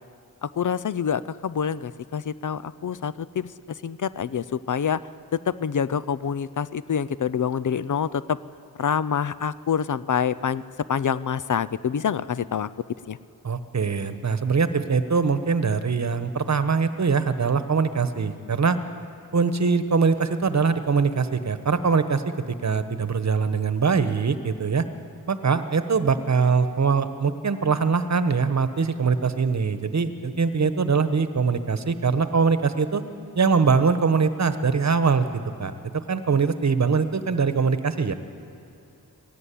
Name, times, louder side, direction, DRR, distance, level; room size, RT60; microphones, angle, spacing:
voice 1, 0.4-3.5 3.8-5.0 5.3-8.4 8.8-10.6 10.9-12.7 13.1-13.2, left 7 dB, 55° left, 17 dB, 0.6 m, -26 dB
voice 2, 13.4-18.8 19.3-22.2 22.5-24.8 25.3-33.0 33.4-35.3 35.6-38.1, right 5 dB, 50° right, 11 dB, 1.2 m, -22 dB
18.5 x 17.0 x 8.5 m, 2.6 s
cardioid pair, 65°, 36 cm